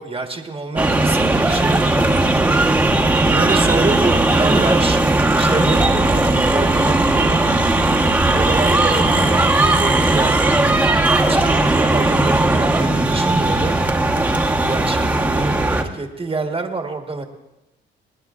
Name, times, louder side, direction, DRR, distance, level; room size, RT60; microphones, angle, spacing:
voice 1, 0.0-2.7 3.2-5.0 5.4-7.5 8.3-10.6 11.2-13.8 14.6-17.2, right 3 dB, 30° right, 3 dB, 1.4 m, -27 dB
sound 1, 0.8-15.8, right 2 dB, 10° right, 1.2 m, -17 dB
27.5 x 9.7 x 2.5 m, 0.97 s
cardioid pair, 90°, 20 cm